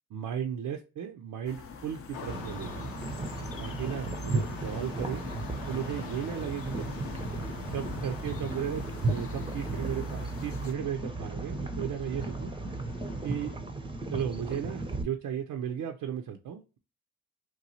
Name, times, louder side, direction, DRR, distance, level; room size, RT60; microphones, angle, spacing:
voice 1, 0.1-2.9 3.6-5.3 5.7-6.9 7.7-12.5 13.2-13.6 14.1-16.8, right 9 dB, 55° right, 5 dB, 0.5 m, -35 dB
sound 1, 1.4-10.7, left 6 dB, 35° left, 0.5 m, -45 dB
sound 2, 2.1-13.6, left 6 dB, 80° left, 0.7 m, -47 dB
sound 3, 2.3-15.0, right 2 dB, 15° right, 0.6 m, -35 dB
3.0 x 2.3 x 2.6 m, 0.32 s
supercardioid pair, 45°, 39 cm